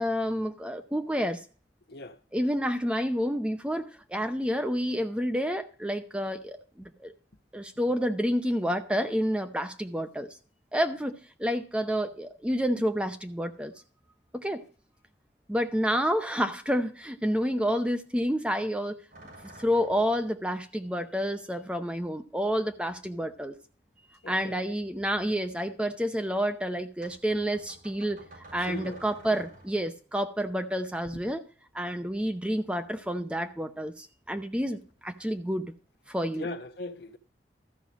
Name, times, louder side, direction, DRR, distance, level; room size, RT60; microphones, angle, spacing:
voice 1, 0.0-1.4 2.3-7.1 7.5-10.4 10.7-13.7 14.3-14.6 15.5-19.0 19.6-23.6 24.3-31.4 31.7-35.7 36.1-36.5, equal, 5° right, 0.6 m, -29 dB
voice 2, 1.9-2.2 24.2-24.6 28.7-29.0 29.3-29.4 36.3-37.2, left 2 dB, 60° left, 1.0 m, -39 dB
sound 1, 19.1-20.4 21.9-22.0 22.6-23.9 24.2-25.7 27.0-30.0 32.1-33.0 33.2-33.7 34.1-35.2, right 1 dB, 50° right, 6.1 m, -53 dB
13.5 x 5.6 x 6.2 m
head